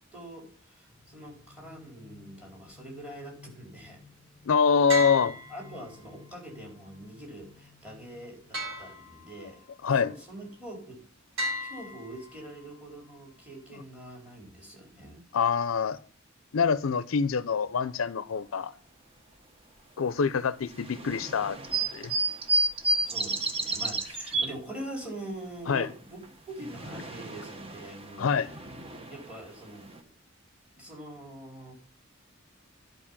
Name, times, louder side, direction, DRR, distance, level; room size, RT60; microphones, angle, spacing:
voice 1, 0.1-4.0 5.5-9.6 9.9-11.0 11.4-15.2 23.0-28.3 29.1-30.1 30.8-31.7, right 1 dB, 5° right, 4.1 m, -44 dB
sound 1, 0.9-8.8, left 5 dB, 10° left, 3.9 m, -55 dB
voice 2, 4.5-5.4 9.8-10.1 15.3-16.0 16.5-18.7 20.0-21.6 21.9-22.1 25.7-25.9 28.2-28.5, left 6 dB, 75° left, 0.5 m, -25 dB
sound 2, 4.9-6.1 8.5-9.6 11.4-12.6, equal, 70° right, 3.2 m, -35 dB
sound 3, 20.7-24.5 26.2-30.0, right 2 dB, 30° right, 1.1 m, -31 dB
11.0 x 5.3 x 7.1 m
head